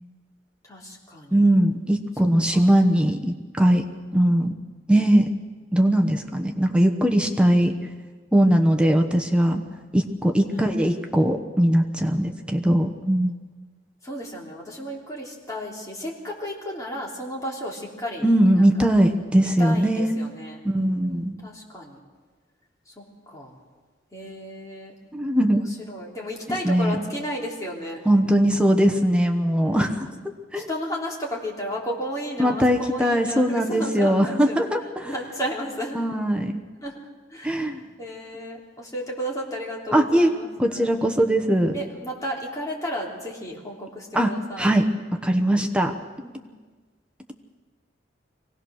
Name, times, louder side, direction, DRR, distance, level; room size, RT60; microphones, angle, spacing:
voice 1, 0.6-1.4 2.2-2.7 8.6-9.0 10.5-10.7 12.2-12.6 14.0-18.9 19.6-22.0 22.9-23.6 24.1-24.9 25.5-28.0 29.6-30.2 30.5-36.0 36.8-37.0 37.3-41.0 41.7-44.7 46.2-46.5, equal, 15° left, -3 dB, 3.3 m, -34 dB
voice 2, 1.3-3.8 4.1-4.5 4.9-5.3 5.7-7.7 8.3-9.6 9.9-13.4 18.2-20.2 20.6-21.4 25.1-25.6 26.6-26.9 28.1-30.1 30.5-30.7 32.4-35.1 35.9-36.5 37.4-37.8 39.9-40.3 40.6-41.8 44.1-44.3 44.6-44.8 45.2-45.9, right 1 dB, 5° right, 4 dB, 1.0 m, -20 dB
24.0 x 18.0 x 6.4 m, 1.4 s
head